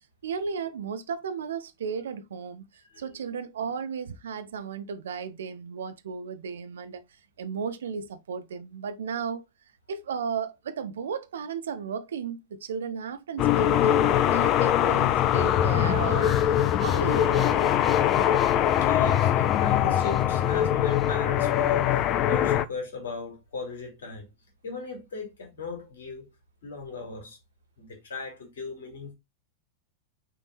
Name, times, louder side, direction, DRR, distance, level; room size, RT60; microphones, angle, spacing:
voice 1, 0.2-2.7 3.0-7.1 7.4-9.4 9.9-17.8, right 6 dB, 65° right, 0.8 m, -34 dB
sound 1, 13.4-22.7, left 11 dB, 35° left, 0.5 m, -22 dB
Breathing, 16.1-22.1, right 2 dB, 5° right, 1.3 m, -46 dB
voice 2, 18.8-24.3 24.6-26.3 26.6-27.4 27.8-29.1, left 3 dB, 60° left, 3.0 m, -38 dB
6.4 x 3.6 x 4.1 m
figure-of-eight pair, 90°, 0 cm